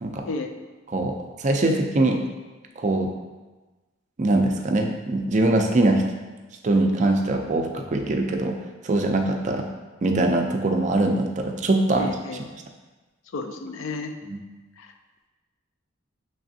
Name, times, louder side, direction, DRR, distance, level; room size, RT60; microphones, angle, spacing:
voice 1, 0.9-2.2 2.8-3.1 4.2-6.0 6.6-8.5 8.8-9.6 10.0-12.1 14.3-14.4, right 2 dB, 35° right, 3 dB, 0.4 m, -22 dB
voice 2, 12.0-12.4 13.3-14.1 14.8-14.9, left 3 dB, 65° left, 5 dB, 0.4 m, -32 dB
5.9 x 3.3 x 2.7 m, 1.2 s
head